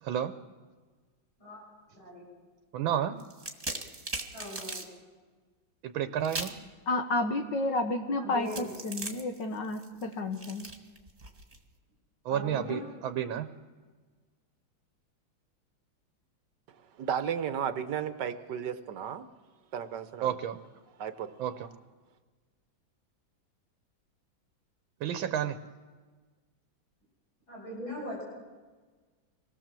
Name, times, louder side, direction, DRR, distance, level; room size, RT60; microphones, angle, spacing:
voice 1, 0.0-0.3 2.7-3.2 5.8-6.5 12.3-13.5 20.2-20.6 21.4-21.7 25.0-25.6, right 10 dB, 85° right, 10 dB, 1.6 m, -31 dB
voice 2, 1.9-2.2 4.3-4.8 8.2-8.9 12.3-12.8 27.5-28.2, left 1 dB, 80° left, -5 dB, 8.3 m, -40 dB
sound 1, 3.2-4.9 6.2-6.7 8.5-11.6, right 2 dB, 20° right, 1.8 m, -39 dB
voice 3, 6.9-10.7, left 2 dB, 65° left, 5 dB, 1.8 m, -31 dB
voice 4, 17.0-19.2 19.7-20.3 21.0-21.3, right 8 dB, 65° right, 11 dB, 1.4 m, -34 dB
25.0 x 18.0 x 7.5 m, 1.4 s
omnidirectional pair, 2.2 m